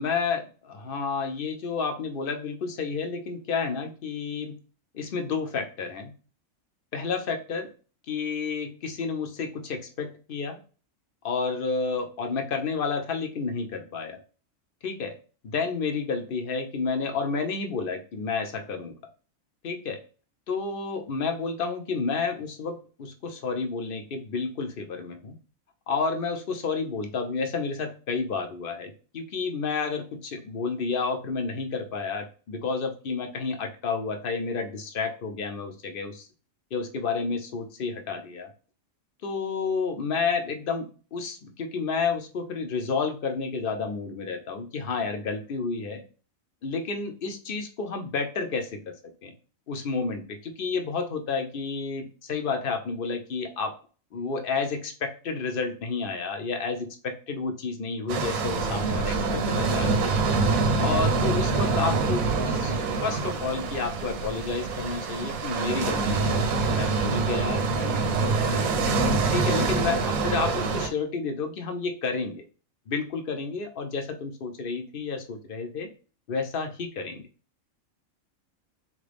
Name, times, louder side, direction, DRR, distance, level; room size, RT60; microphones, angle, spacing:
voice 1, 0.0-4.5 4.9-6.1 6.9-7.7 8.1-10.6 11.2-14.2 14.8-15.2 15.4-19.0 19.6-20.0 20.5-25.4 25.9-36.3 36.7-38.5 39.2-46.0 46.6-49.0 49.2-49.3 49.7-53.7 54.1-59.9 60.8-66.4 66.7-68.7 69.3-72.4 72.9-75.9 76.3-77.2, left 4 dB, 50° left, 5 dB, 0.8 m, -30 dB
sound 1, 58.1-70.9, right 3 dB, 90° right, 1.2 m, -25 dB
3.9 x 3.3 x 3.4 m, 0.38 s
omnidirectional pair, 1.4 m